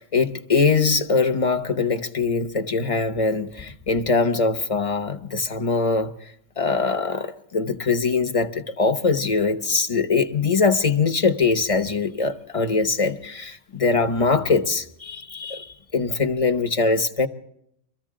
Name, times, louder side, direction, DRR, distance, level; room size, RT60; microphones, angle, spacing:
voice 1, 0.0-6.1 6.6-17.3, left 4 dB, 30° left, 7 dB, 1.0 m, -22 dB
24.0 x 14.5 x 3.7 m, 0.71 s
omnidirectional pair, 1.3 m